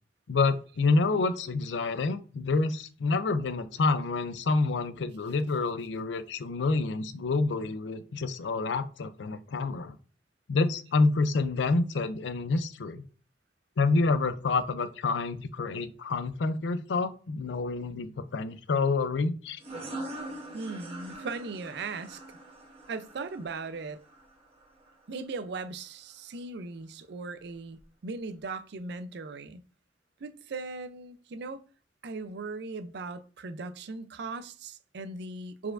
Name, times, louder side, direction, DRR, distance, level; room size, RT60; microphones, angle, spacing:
voice 1, 0.3-10.0 10.5-13.0 13.8-19.6, left 3 dB, 80° left, 0.4 m, -28 dB
sound 1, 19.6-25.0, right 1 dB, 35° right, 1.5 m, -43 dB
voice 2, 20.5-22.2 22.9-24.0 25.1-29.6 30.2-31.6 32.0-35.7, right 3 dB, 65° right, 0.5 m, -38 dB
4.6 x 4.1 x 2.5 m
head